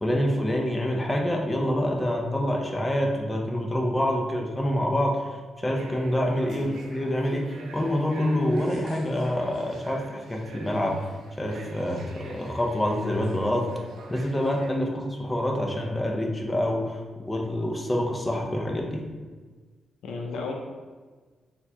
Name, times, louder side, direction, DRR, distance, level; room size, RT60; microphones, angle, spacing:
voice 1, 0.0-11.0 11.4-13.7 14.1-19.0, left 1 dB, 10° left, 0 dB, 0.5 m, -26 dB
sound 1, 5.7-14.7, right 3 dB, 80° right, 0.4 m, -46 dB
voice 2, 20.0-20.5, left 4 dB, 90° left, 1 dB, 0.5 m, -34 dB
4.3 x 2.2 x 2.7 m, 1.4 s
cardioid pair, 120°, 0 cm